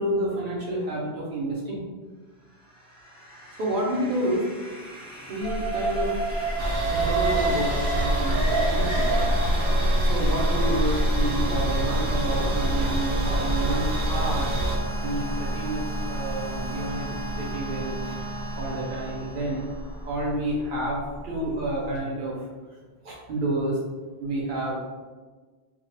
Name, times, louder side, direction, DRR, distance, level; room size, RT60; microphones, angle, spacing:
voice 1, 0.0-1.9 3.6-4.5 5.3-6.2 6.8-9.2 9.8-14.5 15.0-15.8 16.1-17.1 17.3-18.2 18.6-19.7 20.1-22.5 23.0-23.8 24.2-24.8, right 1 dB, 60° right, -3 dB, 0.6 m, -29 dB
sound 1, 2.4-20.1, right 2 dB, 30° left, 0.8 m, -37 dB
Alarm, 5.4-21.5 21.8-21.9, right 1 dB, 20° right, 0.5 m, -28 dB
sound 2, 6.6-14.8, right 2 dB, 90° right, 0.9 m, -28 dB
2.1 x 2.0 x 3.1 m, 1.4 s
omnidirectional pair, 1.1 m